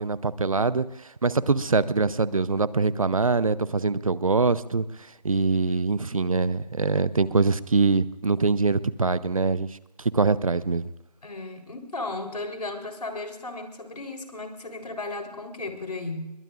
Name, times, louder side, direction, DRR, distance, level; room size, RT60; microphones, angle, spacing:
voice 1, 0.0-4.8 5.2-9.7 10.0-10.8, right 4 dB, 55° right, 17 dB, 0.7 m, -23 dB
voice 2, 11.2-16.3, left 2 dB, 70° left, 5 dB, 3.8 m, -35 dB
25.5 x 22.0 x 2.5 m, 0.97 s
figure-of-eight pair, 175°, 21 cm